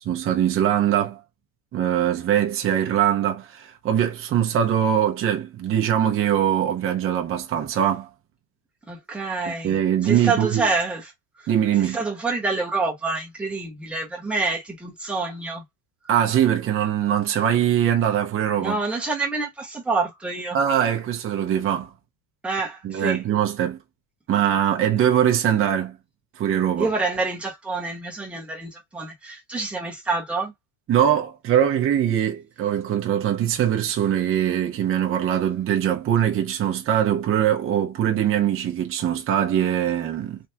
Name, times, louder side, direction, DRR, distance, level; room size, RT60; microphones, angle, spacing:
voice 1, 0.1-1.2 1.7-8.1 9.5-10.7 11.5-12.0 16.1-18.8 20.5-21.9 22.8-23.8 24.3-26.0 26.4-26.9 30.9-40.4, right 10 dB, 30° right, 0.7 m, -22 dB
voice 2, 8.9-9.8 10.0-11.0 11.8-15.6 18.6-20.6 22.4-23.2 26.8-30.5, right 3 dB, ahead, 1.0 m, -27 dB
3.5 x 2.3 x 2.8 m
cardioid pair, 155°, 47 cm